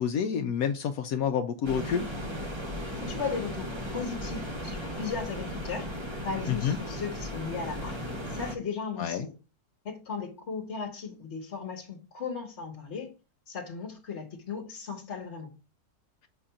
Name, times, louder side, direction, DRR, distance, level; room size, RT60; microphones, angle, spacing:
voice 1, 0.0-2.1 6.5-6.8 9.0-9.3, left 7 dB, 70° left, 7 dB, 1.0 m, -28 dB
sound 1, 1.6-8.6, equal, 25° right, 0.8 m, -36 dB
voice 2, 3.0-5.9 6.2-8.0 8.3-9.3 9.8-13.1 13.5-15.5, left 5 dB, 45° left, 0 dB, 1.3 m, -36 dB
6.8 x 2.5 x 5.5 m, 0.31 s
omnidirectional pair, 1.7 m